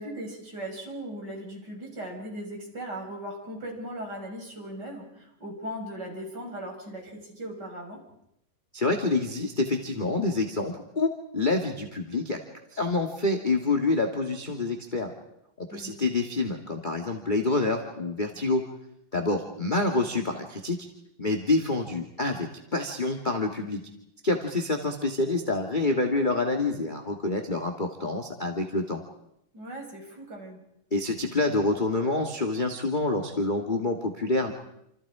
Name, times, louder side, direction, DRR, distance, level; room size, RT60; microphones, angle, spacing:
voice 1, 0.0-8.0 15.7-15.9 29.5-30.6, right 1 dB, 30° right, 1 dB, 6.6 m, -38 dB
voice 2, 8.7-12.4 12.7-15.1 15.6-18.6 19.1-20.8 21.2-23.8 24.2-29.0 30.9-34.5, left 2 dB, 20° left, 3 dB, 1.6 m, -27 dB
28.5 x 27.5 x 5.0 m, 0.79 s
omnidirectional pair, 3.7 m